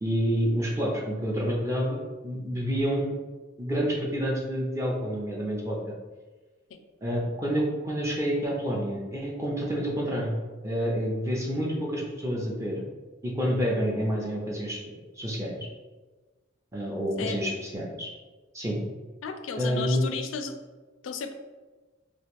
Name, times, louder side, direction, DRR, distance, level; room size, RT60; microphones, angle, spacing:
voice 1, 0.0-3.2 3.6-5.8 7.0-10.4 10.6-12.8 13.2-15.6 16.7-18.1 18.5-18.8 19.6-20.0, equal, 15° right, -3 dB, 0.5 m, -28 dB
voice 2, 17.2-17.6 19.2-20.6 21.0-21.3, left 5 dB, 80° left, 7 dB, 0.4 m, -34 dB
2.9 x 2.4 x 3.5 m, 1.3 s
head